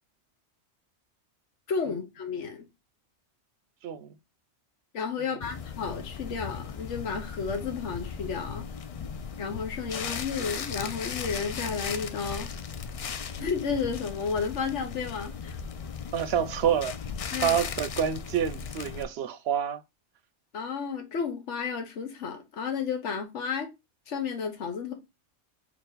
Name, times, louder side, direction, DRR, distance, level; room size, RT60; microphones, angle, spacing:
voice 1, 1.7-2.6 4.9-8.6 9.4-12.5 13.4-15.6 17.3-17.6 20.5-23.7 24.1-24.9, left 5 dB, 85° left, 1.3 m, -32 dB
voice 2, 3.8-4.1 16.1-17.0 17.4-19.8, right 9 dB, 70° right, 0.8 m, -27 dB
sound 1, 5.4-19.0, left 6 dB, 65° left, 0.3 m, -37 dB
4.4 x 3.0 x 3.8 m
omnidirectional pair, 1.2 m